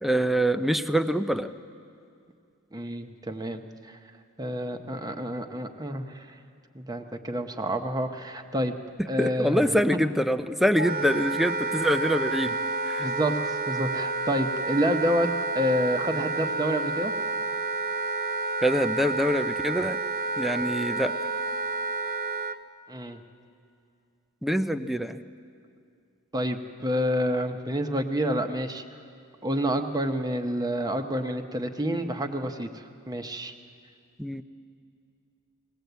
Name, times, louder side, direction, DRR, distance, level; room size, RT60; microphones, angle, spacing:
voice 1, 0.0-1.5 9.2-12.6 12.9-13.1 18.6-20.0 20.4-21.1 24.4-25.2 34.2-34.4, equal, ahead, 10 dB, 0.5 m, -25 dB
voice 2, 2.7-4.0 4.4-6.3 6.7-8.7 9.1-9.6 9.9-10.0 13.0-15.3 15.5-17.1 22.9-23.2 26.3-28.8 29.4-32.7 33.1-33.5, equal, 20° right, 5 dB, 0.9 m, -28 dB
Wind instrument woodwind instrument, 10.8-22.6, right 3 dB, 45° right, 0.7 m, -30 dB
19.5 x 18.5 x 8.1 m, 2.4 s
head